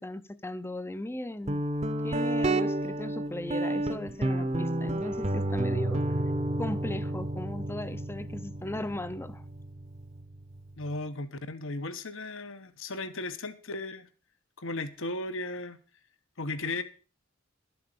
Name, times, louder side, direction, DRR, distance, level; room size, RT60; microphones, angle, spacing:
voice 1, 0.0-1.6 2.0-6.0 6.6-9.4, left 1 dB, 10° left, 0.7 m, -37 dB
Guitar, 1.5-10.9, right 1 dB, 30° right, 1.0 m, -31 dB
voice 2, 10.8-14.1 14.6-15.8 16.4-16.8, left 2 dB, 65° left, 1.2 m, -36 dB
12.5 x 7.8 x 6.9 m
head